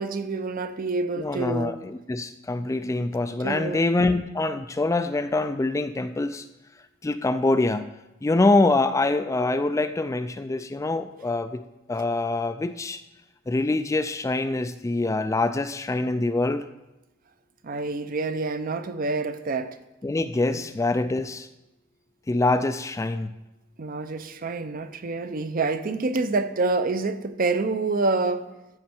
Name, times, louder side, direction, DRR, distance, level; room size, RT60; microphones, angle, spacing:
voice 1, 0.0-1.8 3.4-3.8 17.6-19.8 20.5-20.6 23.8-28.5, right 3 dB, 45° right, 0.6 m, -27 dB
voice 2, 1.2-6.4 7.0-7.9 8.2-11.6 11.9-13.0 13.5-16.7 20.0-21.5 22.3-23.3, left 2 dB, 15° left, 0.3 m, -25 dB
14.0 x 6.3 x 4.4 m
head